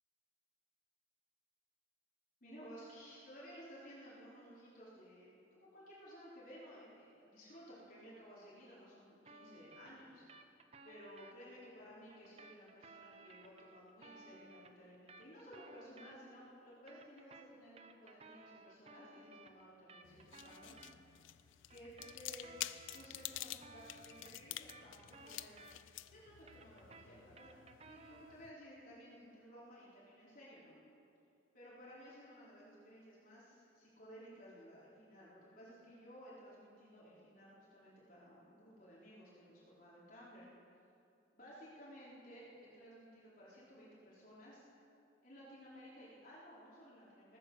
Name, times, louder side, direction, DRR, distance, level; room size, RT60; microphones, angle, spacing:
voice 1, 2.4-10.2 10.8-21.0 21.7-22.5 22.9-25.6 26.1-30.7 31.5-40.5 41.3-44.6 45.2-47.4, equal, 45° left, -8 dB, 4.1 m, -56 dB
sound 1, 9.2-11.3 12.1-16.4 16.7-20.9 21.7-26.0 26.3-28.4, right 3 dB, 30° right, 0.7 m, -59 dB
sound 2, 20.0-28.5, left 14 dB, 90° left, 0.5 m, -49 dB
20.0 x 9.4 x 6.4 m, 2.6 s
head